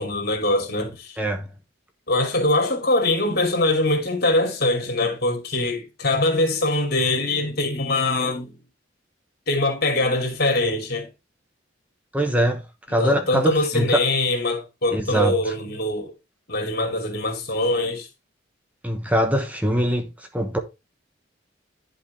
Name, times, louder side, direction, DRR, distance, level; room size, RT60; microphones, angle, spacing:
voice 1, 0.0-1.2 2.1-8.6 9.5-11.1 12.9-16.1 16.5-18.1, left 2 dB, 55° left, 2.8 m, -23 dB
voice 2, 1.2-1.5 12.1-12.6 12.9-14.0 14.9-15.5 18.8-20.6, right 1 dB, 10° right, 1.1 m, -23 dB
11.0 x 5.3 x 3.3 m
head